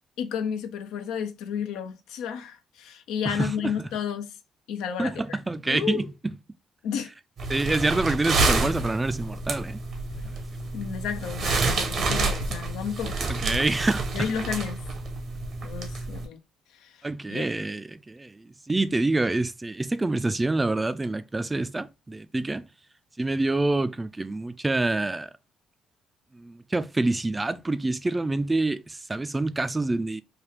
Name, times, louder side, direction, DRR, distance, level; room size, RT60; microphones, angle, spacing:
voice 1, 0.2-4.4 4.7-5.4 5.7-6.1 6.8-7.1 10.7-13.3 14.1-14.8 15.6-16.4 16.8-16.9 17.3-17.5, left 7 dB, 80° left, 0.5 m, -32 dB
voice 2, 3.3-3.9 5.0-6.3 7.5-9.8 13.4-14.3 17.0-22.6 23.2-25.3 26.3-30.2, right 2 dB, 20° right, 0.4 m, -27 dB
sound 1, 7.4-16.3, right 3 dB, 60° right, 0.8 m, -28 dB
3.3 x 2.3 x 3.3 m
supercardioid pair, 60°, 0 cm